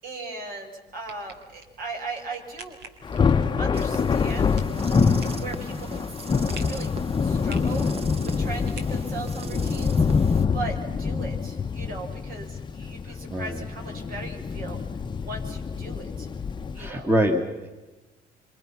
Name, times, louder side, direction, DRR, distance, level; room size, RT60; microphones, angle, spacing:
voice 1, 0.0-2.8 3.6-4.6 5.3-6.0 6.6-6.9 7.2-7.9 8.2-10.1 10.5-14.8 15.2-16.3 16.7-17.1, right 3 dB, 60° right, 2 dB, 6.8 m, -38 dB
sound 1, 0.9-9.6, right 3 dB, 80° right, 4.1 m, -48 dB
Thunder, 3.0-16.9, left 5 dB, 25° left, 1.0 m, -26 dB
sound 2, 3.7-10.4, right 4 dB, 35° right, 1.4 m, -40 dB
voice 2, 5.0-5.3 13.3-13.5 16.8-17.7, equal, 15° right, 5 dB, 1.9 m, -24 dB
26.5 x 26.5 x 5.9 m, 1.2 s
cardioid pair, 110°, 17 cm